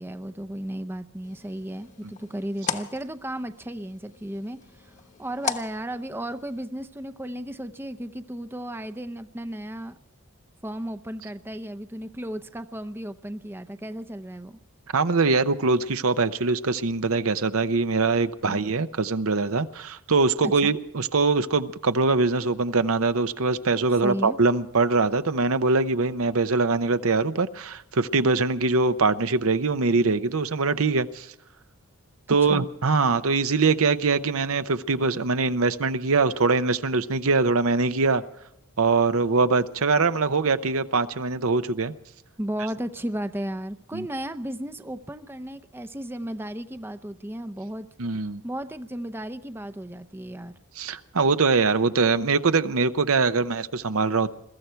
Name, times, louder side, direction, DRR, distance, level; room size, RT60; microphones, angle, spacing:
voice 1, 0.0-4.9 5.2-10.0 10.6-14.6 18.5-18.6 20.4-20.7 24.0-24.4 32.3-32.7 42.4-47.9 48.4-50.6, right 1 dB, 10° right, 0.6 m, -34 dB
sound 1, 1.2-6.6, left 6 dB, 35° left, 1.1 m, -37 dB
voice 2, 14.9-31.3 32.3-38.2 38.8-41.9 43.9-44.1 48.0-48.4 50.8-54.3, right 4 dB, 70° right, 0.8 m, -23 dB
22.5 x 14.0 x 4.5 m
head